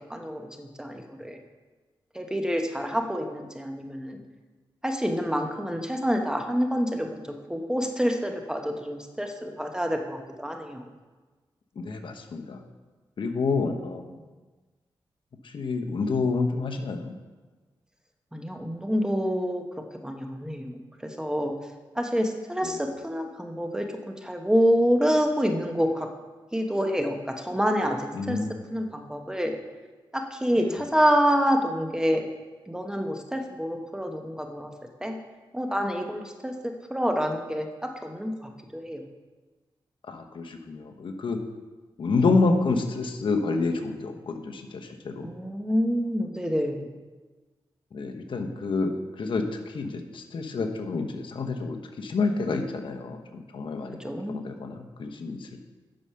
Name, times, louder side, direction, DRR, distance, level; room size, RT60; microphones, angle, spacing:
voice 1, 0.0-1.4 2.1-4.2 4.8-7.2 7.5-10.9 13.8-14.0 18.3-19.6 20.0-21.5 21.9-26.1 26.5-28.4 28.7-29.6 30.1-32.2 32.7-34.7 35.0-35.2 35.5-39.0 45.2-46.9 54.0-54.4, equal, 5° right, 3 dB, 1.0 m, -27 dB
voice 2, 11.8-12.6 13.2-14.1 15.4-17.1 22.6-22.7 28.1-28.6 30.6-30.7 40.1-41.4 42.0-45.3 47.9-48.9 49.2-54.0 54.3-55.5, left 3 dB, 65° left, 4 dB, 1.0 m, -28 dB
8.9 x 6.4 x 5.7 m, 1.3 s
wide cardioid pair, 90°, 9 cm